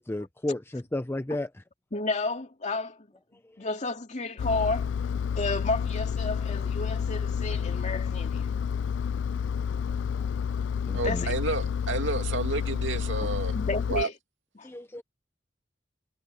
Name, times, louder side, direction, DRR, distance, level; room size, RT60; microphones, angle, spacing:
voice 1, 0.0-1.5 10.9-11.2 14.6-15.0, left 1 dB, 10° left, 0.6 m, -32 dB
voice 2, 1.9-3.1 3.6-4.9 5.4-8.5 11.0-11.3 13.2-14.1 14.6-14.7, left 3 dB, 40° left, 2.5 m, -32 dB
Engine, 4.4-14.0, left 7 dB, 70° left, 0.3 m, -30 dB
voice 3, 10.9-13.5 13.9-14.1, right 3 dB, 80° right, 2.5 m, -30 dB
head